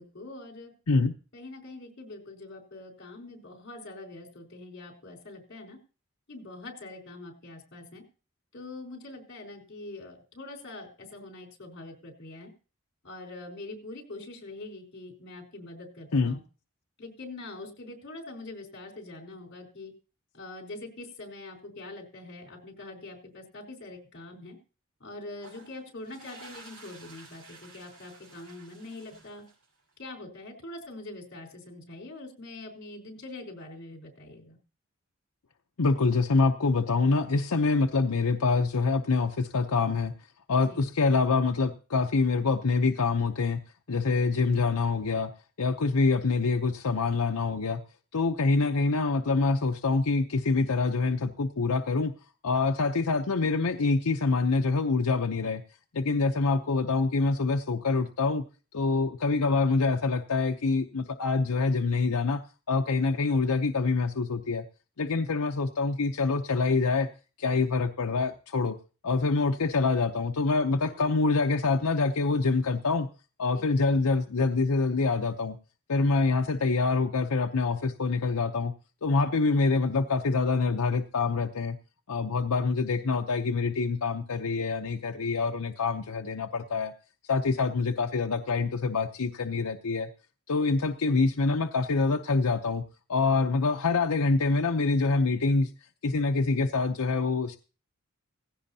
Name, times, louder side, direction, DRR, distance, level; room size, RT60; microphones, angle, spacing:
voice 1, 0.0-0.7 1.3-5.8 6.3-8.0 8.5-12.5 13.0-16.4 17.0-19.9 20.3-24.6 25.0-29.4 30.0-34.6 40.5-40.9 70.9-71.0 73.5-73.7, left 2 dB, 50° left, 3 dB, 4.1 m, -44 dB
sound 1, 25.3-29.9, right 3 dB, 85° right, 5.8 m, -52 dB
voice 2, 35.8-40.1 40.5-43.6 43.9-45.3 45.6-47.8 48.1-52.1 52.4-55.6 55.9-58.4 58.7-62.4 62.7-64.6 65.0-67.1 67.4-68.8 69.0-73.1 73.4-75.6 75.9-78.7 79.0-81.8 82.1-86.9 87.3-90.1 90.5-92.8 93.1-95.7 96.0-97.6, left 4 dB, 90° left, 4 dB, 0.8 m, -26 dB
17.5 x 16.0 x 2.8 m, 0.36 s
head